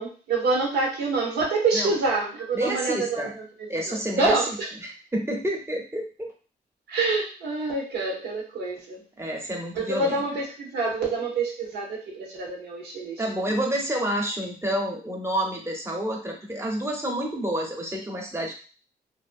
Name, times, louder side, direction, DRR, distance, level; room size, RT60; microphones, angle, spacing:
voice 1, 0.0-4.7 6.9-9.0 9.7-13.4, right 3 dB, 85° right, -2 dB, 0.9 m, -27 dB
voice 2, 2.5-3.3 3.7-4.4 4.8-6.3 9.2-10.2 13.2-18.5, right 1 dB, 15° right, 1 dB, 0.8 m, -29 dB
2.5 x 2.0 x 2.5 m, 0.37 s
cardioid pair, 65°, 17 cm